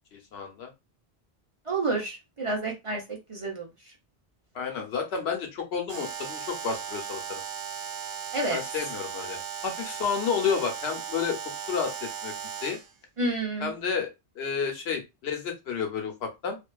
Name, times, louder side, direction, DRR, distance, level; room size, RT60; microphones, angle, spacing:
voice 1, 0.1-0.7 4.5-7.4 8.5-11.4 11.7-12.3 12.6-12.8 13.6-14.1 14.4-16.6, left 6 dB, 80° left, 3 dB, 0.9 m, -31 dB
voice 2, 1.7-3.7 8.3-8.6 13.2-13.7, right 2 dB, 40° right, -1 dB, 0.6 m, -29 dB
Alarm, 5.9-12.9, right 8 dB, 75° right, 0.8 m, -37 dB
2.5 x 2.2 x 2.2 m, 0.24 s
omnidirectional pair, 1.0 m